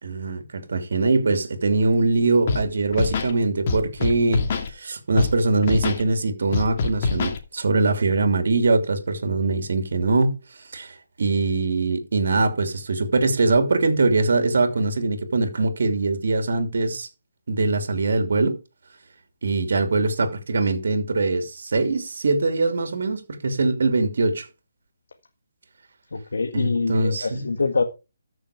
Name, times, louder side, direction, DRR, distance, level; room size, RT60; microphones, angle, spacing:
voice 1, 0.0-4.4 4.7-10.4 10.7-17.1 17.5-18.6 19.4-24.5 26.5-27.5, right 3 dB, 65° right, 2.9 m, -22 dB
Scratching (performance technique), 2.5-2.6 2.9-3.3 3.7-4.7 5.2-5.3 5.6-6.0 6.5-7.4, left 4 dB, 40° left, 2.6 m, -24 dB
voice 2, 26.1-27.8, left 4 dB, 80° left, 1.7 m, -25 dB
14.0 x 6.5 x 5.0 m
hypercardioid pair, 155°, 0 cm